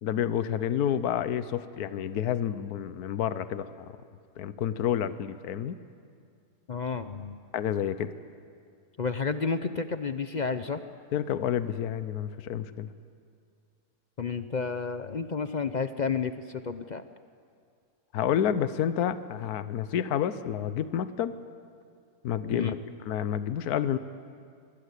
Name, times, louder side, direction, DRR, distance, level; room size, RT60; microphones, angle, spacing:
voice 1, 0.0-3.9 4.4-5.8 7.5-8.1 11.1-12.9 18.1-21.4 22.2-24.0, left 9 dB, 75° left, 13 dB, 1.3 m, -29 dB
voice 2, 6.7-7.4 9.0-10.8 14.2-17.0 22.5-22.8, left 5 dB, 50° left, 10 dB, 0.5 m, -31 dB
25.5 x 21.5 x 8.3 m, 2.3 s
omnidirectional pair, 1.7 m